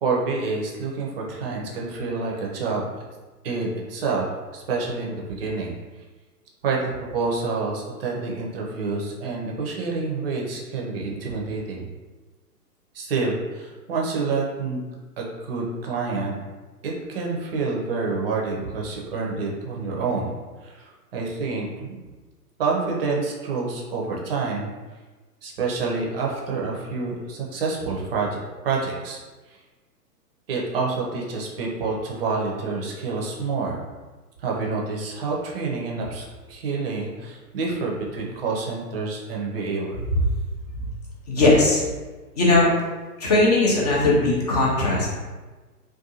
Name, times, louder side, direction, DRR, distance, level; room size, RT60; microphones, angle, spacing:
voice 1, 0.0-2.9 3.4-5.7 6.6-11.8 12.9-14.8 15.2-16.4 16.8-20.3 20.6-22.0 22.6-24.7 25.4-29.2 29.5-29.6 30.5-33.8 34.4-40.0, right 4 dB, 40° right, -2 dB, 0.5 m, -28 dB
voice 2, 41.3-41.8 42.4-42.7 43.2-45.2, left 2 dB, 30° left, -5 dB, 0.4 m, -19 dB
2.5 x 2.3 x 2.7 m, 1.3 s
figure-of-eight pair, 120°, 48 cm